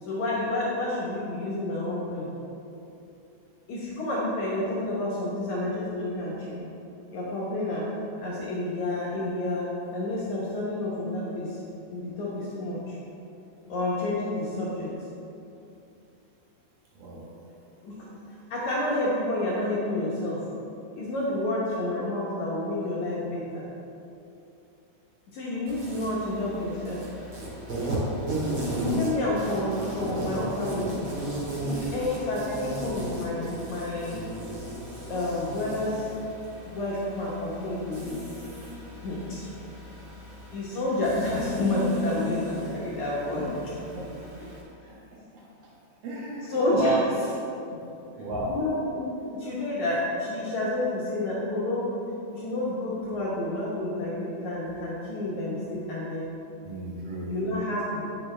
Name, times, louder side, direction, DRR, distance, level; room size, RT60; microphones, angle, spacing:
voice 1, 0.0-2.3 3.7-6.6 7.1-7.8 8.2-11.6 11.9-13.0 13.7-14.9 17.8-18.0 18.5-20.4 21.0-23.7 25.3-27.0 28.4-31.0 31.6-34.2 35.1-36.1 36.6-38.2 39.0-39.5 40.5-43.5 46.5-47.0 48.5-51.9 52.3-56.3 57.3-58.1, left 2 dB, 75° left, -7 dB, 1.7 m, -29 dB
voice 2, 17.0-17.3 18.6-18.8 43.9-44.1 46.0-46.9 48.2-48.6 56.6-57.3, equal, 90° right, -5 dB, 1.3 m, -32 dB
Insect, 25.6-44.6, right 1 dB, 45° right, 1.4 m, -35 dB
11.0 x 7.8 x 3.3 m, 2.8 s
omnidirectional pair, 5.2 m